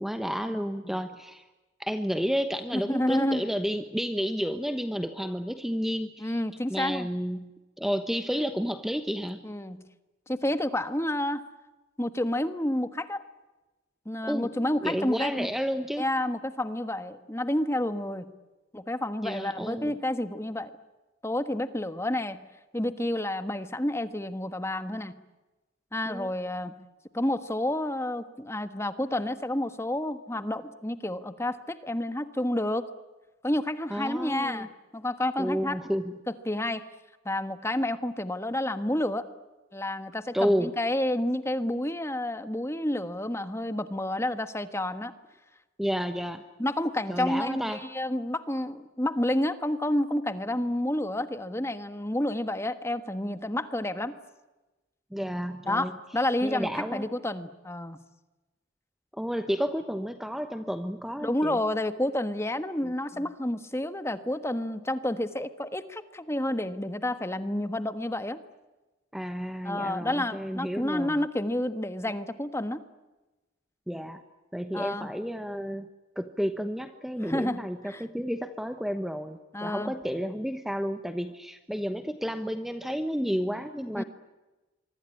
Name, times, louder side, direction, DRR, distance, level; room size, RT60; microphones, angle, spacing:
voice 1, 0.0-1.4 1.8-6.4 6.7-7.5 7.8-9.4 14.2-14.5 14.8-16.1 19.2-20.0 26.0-26.3 33.9-34.7 35.4-36.2 40.3-40.7 45.8-46.4 47.1-47.8 55.1-55.9 56.4-57.0 59.1-61.6 62.8-62.9 69.1-71.2 73.9-74.2 74.5-75.9 76.2-84.0, equal, ahead, 8 dB, 1.0 m, -31 dB
voice 2, 2.7-3.4 6.2-7.1 9.4-9.8 10.3-11.4 12.0-13.2 14.0-15.5 16.0-18.3 18.7-20.7 21.2-22.4 22.7-25.2 25.9-26.8 27.1-32.9 33.4-34.7 34.9-35.8 36.5-36.8 37.2-39.2 39.7-45.1 46.6-54.1 55.7-58.0 61.2-68.4 69.6-72.8 74.7-75.1 77.2-78.0 79.5-79.9 83.9-84.0, left 1 dB, 15° left, 11 dB, 1.4 m, -30 dB
25.0 x 24.0 x 9.8 m, 1.1 s
head